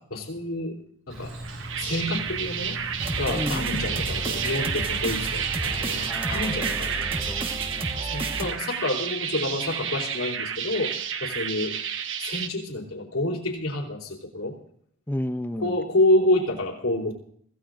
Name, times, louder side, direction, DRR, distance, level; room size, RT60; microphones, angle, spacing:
voice 1, 0.1-0.7 1.1-1.3 1.8-2.8 3.2-6.9 8.1-10.9 11.2-11.7 12.2-14.5 15.6-17.1, left 1 dB, 80° left, -6 dB, 3.2 m, -28 dB
Insect, 1.1-6.1, right 1 dB, 75° right, 6.5 m, -39 dB
sound 1, 1.4-12.5, right 8 dB, 60° right, 1.0 m, -31 dB
sound 2, 3.0-8.5, right 1 dB, 25° right, 1.3 m, -32 dB
voice 2, 3.3-4.0 6.1-7.5 15.1-15.8, left 1 dB, 10° left, 11 dB, 0.5 m, -33 dB
24.5 x 15.5 x 2.5 m, 0.64 s
head